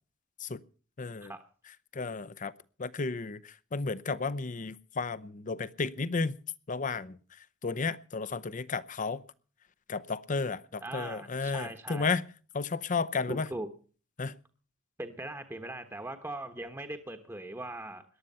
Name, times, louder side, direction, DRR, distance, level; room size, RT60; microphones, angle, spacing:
voice 1, 1.0-1.3 1.9-2.5 2.8-6.3 6.7-7.2 7.6-9.2 9.9-12.2 12.5-13.5 14.2-14.4, left 4 dB, 40° left, 0.7 m, -33 dB
voice 2, 10.8-12.1 13.3-13.7 15.0-18.0, right 1 dB, 15° right, 1.1 m, -40 dB
18.0 x 11.5 x 5.5 m
head